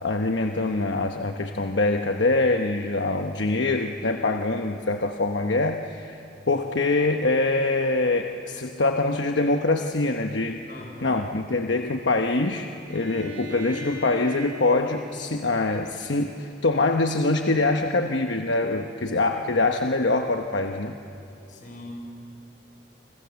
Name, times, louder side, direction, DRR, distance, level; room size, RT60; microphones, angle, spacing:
voice 1, 0.0-6.2 6.5-10.6 11.0-21.0, left 2 dB, 70° left, 4 dB, 1.0 m, -24 dB
voice 2, 10.7-11.3 21.5-22.0, left 1 dB, 45° left, 1 dB, 6.1 m, -41 dB
Bowed string instrument, 12.9-16.6, left 2 dB, 85° right, 4.5 m, -40 dB
29.5 x 25.5 x 7.1 m, 2.6 s
head